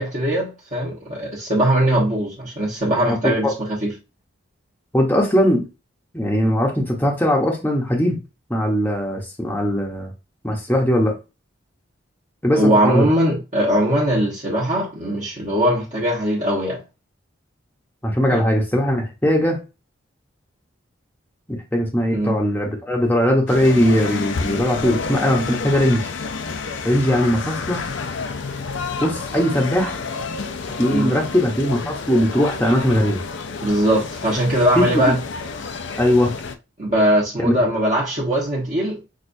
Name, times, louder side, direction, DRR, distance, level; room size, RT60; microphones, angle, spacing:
voice 1, 0.0-3.9 12.6-16.8 18.3-18.5 22.1-22.3 30.9-31.1 33.6-35.2 36.8-39.0, right 1 dB, 40° right, 1.2 m, -20 dB
voice 2, 3.1-3.5 4.9-5.6 6.1-8.2 8.5-10.1 10.4-11.2 12.4-13.1 18.0-19.6 21.5-26.1 26.8-27.8 29.0-30.0 30.8-33.2 34.8-35.1 36.0-36.3 37.4-37.5, equal, 10° left, 0.9 m, -19 dB
sound 1, 23.5-36.5, left 4 dB, 65° left, 0.5 m, -29 dB
6.2 x 2.5 x 2.6 m
head